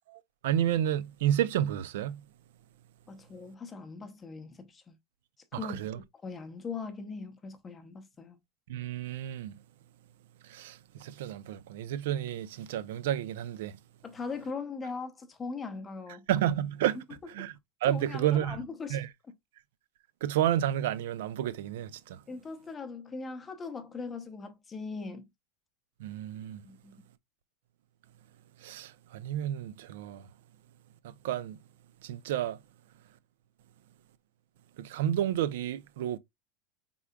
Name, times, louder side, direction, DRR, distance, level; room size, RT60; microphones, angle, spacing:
voice 1, 0.1-2.2 5.5-6.0 8.7-9.6 10.4-13.8 16.3-17.0 17.3-17.5 17.8-18.6 18.9-19.1 20.2-22.2 26.0-26.6 28.6-30.3 31.0-31.6 32.0-32.6 34.8-36.2, right 11 dB, 75° right, 0.4 m, -31 dB
voice 2, 3.1-4.9 5.5-5.8 6.2-8.4 14.0-16.3 17.4-17.5 17.9-19.0 22.3-25.2 26.6-27.0, left 4 dB, 15° left, 0.6 m, -40 dB
4.7 x 3.7 x 2.2 m
supercardioid pair, 155°, 0 cm